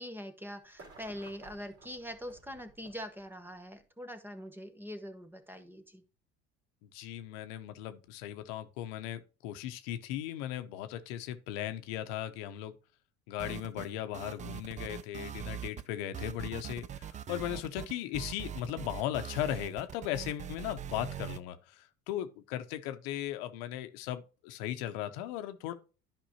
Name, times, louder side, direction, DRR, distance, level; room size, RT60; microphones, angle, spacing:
voice 1, 0.0-6.0, equal, 5° right, 1.1 m, -43 dB
sound 1, 0.6-3.8 4.8-4.9, right 3 dB, 55° right, 3.5 m, -55 dB
voice 2, 6.9-12.8 13.3-25.7, left 12 dB, 80° left, 0.8 m, -37 dB
sound 2, 13.4-13.9 14.1-15.9 16.1-21.4, right 9 dB, 25° right, 0.4 m, -42 dB
10.5 x 5.3 x 2.9 m
supercardioid pair, 95°, 29 cm